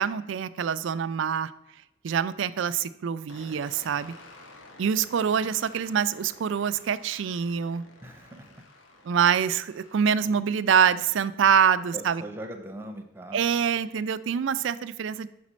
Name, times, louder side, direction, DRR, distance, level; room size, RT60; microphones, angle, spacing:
voice 1, 0.0-1.5 2.0-4.1 4.8-7.8 9.1-12.2 13.3-15.3, right 7 dB, 70° right, 15 dB, 0.4 m, -25 dB
sound 1, 3.3-12.0, left 2 dB, 80° left, 0.9 m, -52 dB
voice 2, 8.0-8.6 10.3-10.4 11.9-13.4, right 1 dB, 10° right, 3 dB, 0.7 m, -41 dB
5.9 x 4.2 x 6.1 m, 0.90 s
head